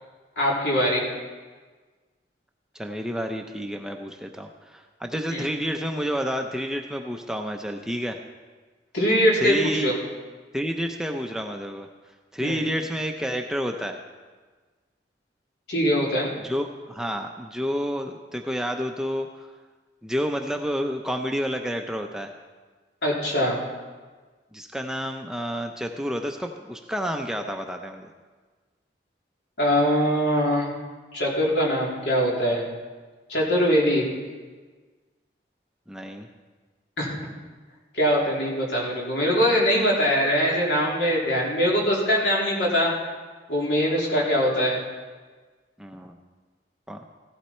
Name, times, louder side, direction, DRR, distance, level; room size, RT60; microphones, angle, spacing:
voice 1, 0.4-1.0 5.3-5.4 8.9-9.9 12.4-12.6 15.7-16.3 23.0-23.6 29.6-30.7 31.1-32.6 33.3-34.0 37.0-37.3 37.9-42.9 43.5-44.8, equal, 70° left, -3 dB, 3.5 m, -22 dB
voice 2, 2.7-8.2 9.4-10.0 10.5-11.9 12.3-14.0 16.4-19.5 20.0-22.3 24.5-28.1 35.9-36.3 45.8-46.1 46.9-47.0, equal, 5° right, 3 dB, 0.6 m, -29 dB
16.0 x 11.5 x 4.4 m, 1.4 s
head